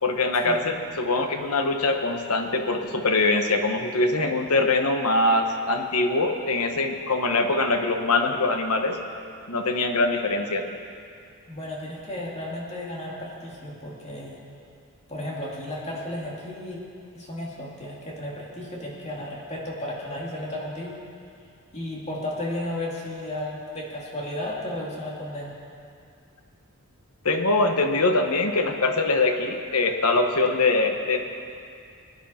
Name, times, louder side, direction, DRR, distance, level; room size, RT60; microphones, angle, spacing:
voice 1, 0.0-9.0 9.5-10.7 27.2-31.2, left 2 dB, 80° left, 5 dB, 1.2 m, -23 dB
voice 2, 11.5-14.4 15.1-16.8 17.1-21.0 21.7-25.6, left 1 dB, 30° left, -4 dB, 2.4 m, -34 dB
21.5 x 10.5 x 4.3 m, 2.4 s
head